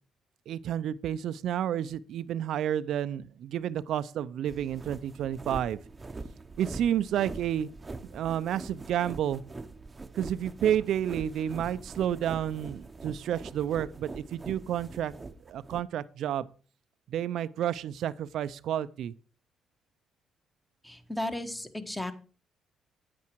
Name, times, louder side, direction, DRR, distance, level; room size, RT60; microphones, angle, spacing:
voice 1, 0.5-5.8 6.6-7.7 8.1-9.4 10.1-15.1 15.5-16.5 17.1-19.1, right 10 dB, 75° right, 0.5 m, -30 dB
sound 1, 4.5-15.8, right 3 dB, 25° right, 0.8 m, -43 dB
voice 2, 20.8-22.1, left 1 dB, 10° left, 1.3 m, -34 dB
9.5 x 8.6 x 4.6 m
cardioid pair, 90°, 0 cm